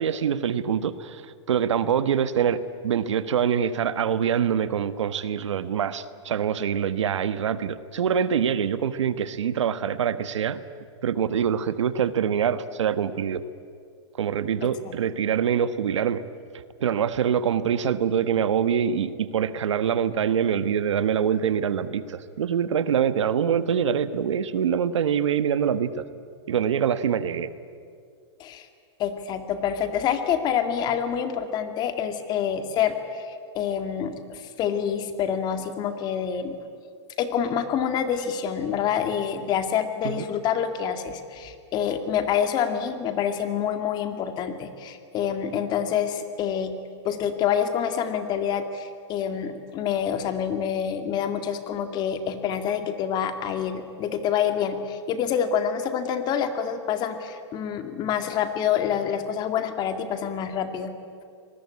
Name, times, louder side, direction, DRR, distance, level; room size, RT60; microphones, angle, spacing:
voice 1, 0.0-10.6 11.0-13.4 14.2-16.2 16.8-26.1 26.5-27.5 40.0-40.3, right 8 dB, 90° right, 13 dB, 1.4 m, -24 dB
voice 2, 29.0-36.5 37.2-46.7 47.0-60.9, left 8 dB, 30° left, 8 dB, 2.2 m, -27 dB
26.0 x 20.5 x 9.7 m, 2.2 s
hypercardioid pair, 145°, 15 cm